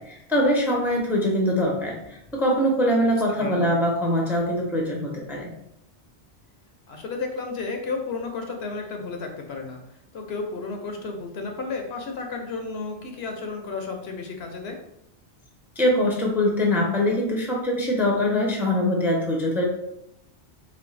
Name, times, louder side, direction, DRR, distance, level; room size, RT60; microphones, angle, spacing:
voice 1, 0.0-5.5 15.8-19.6, left 1 dB, ahead, -1 dB, 0.6 m, -23 dB
voice 2, 3.4-3.7 6.9-9.8 10.1-14.8, left 4 dB, 65° left, 3 dB, 0.9 m, -32 dB
4.0 x 3.0 x 3.2 m, 0.80 s
omnidirectional pair, 1.2 m